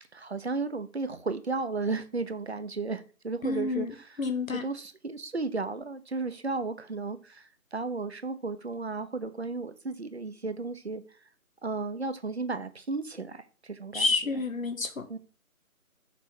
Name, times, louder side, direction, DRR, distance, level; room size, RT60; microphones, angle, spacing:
voice 1, 0.1-4.2 4.5-11.0 11.6-14.1 14.3-14.4 15.1-15.2, right 3 dB, 50° right, 0.8 m, -34 dB
voice 2, 3.4-3.9 4.2-4.6 13.9-15.2, left 3 dB, 65° left, 1.3 m, -29 dB
6.2 x 4.1 x 6.0 m
figure-of-eight pair, 175°, 43 cm